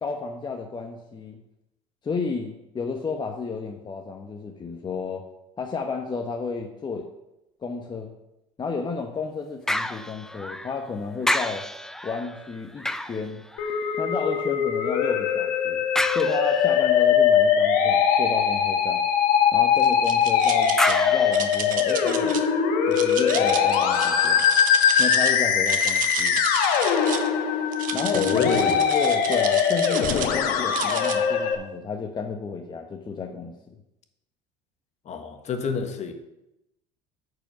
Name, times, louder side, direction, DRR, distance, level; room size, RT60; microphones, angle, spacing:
voice 1, 0.0-1.4 2.0-5.2 5.6-7.1 7.6-8.1 8.6-11.7 12.0-13.4 14.0-15.8 16.1-19.0 19.5-22.4 22.9-24.5 25.0-26.4 27.9-28.4 28.7-33.5, left 4 dB, 25° left, 2 dB, 1.0 m, -32 dB
sound 1, 9.7-10.9 11.2-14.1 16.0-16.9 20.8-22.2 22.8-22.9, left 1 dB, 5° left, 0.5 m, -30 dB
Musical instrument, 13.6-31.5, left 7 dB, 65° left, 1.2 m, -21 dB
sound 2, 19.8-20.9 21.3-22.4 22.9-25.3 25.6-27.3 27.7-30.4 30.7-31.2, right 9 dB, 55° right, 1.0 m, -33 dB
voice 2, 28.1-28.8 35.0-36.1, left 6 dB, 45° left, 6 dB, 1.4 m, -27 dB
8.9 x 5.0 x 5.7 m, 0.89 s
supercardioid pair, 85°, 16 cm